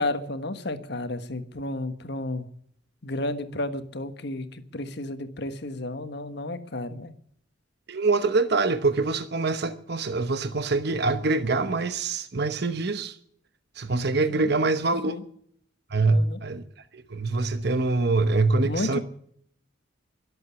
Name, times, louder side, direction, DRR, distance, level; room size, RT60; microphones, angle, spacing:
voice 1, 0.0-2.4 3.0-7.1 14.3-14.5 15.1-15.2 16.1-16.4 18.6-19.0, left 2 dB, 60° left, 1.5 m, -32 dB
voice 2, 7.9-13.2 13.8-15.2 15.9-16.6 16.9-19.0, right 3 dB, 55° right, 1.0 m, -24 dB
23.0 x 8.0 x 7.0 m
head